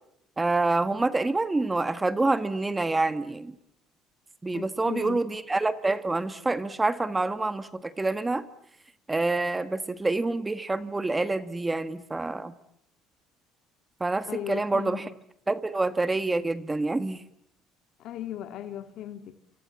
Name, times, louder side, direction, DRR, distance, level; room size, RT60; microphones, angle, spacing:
voice 1, 0.4-3.5 4.4-8.4 9.1-12.5 14.0-15.0 15.5-17.2, right 2 dB, 15° right, 11 dB, 1.5 m, -27 dB
voice 2, 4.5-5.2 14.3-15.1 18.0-19.4, left 11 dB, 65° left, 7 dB, 2.0 m, -37 dB
28.5 x 27.5 x 7.2 m, 0.77 s
cardioid pair, 100°, 0 cm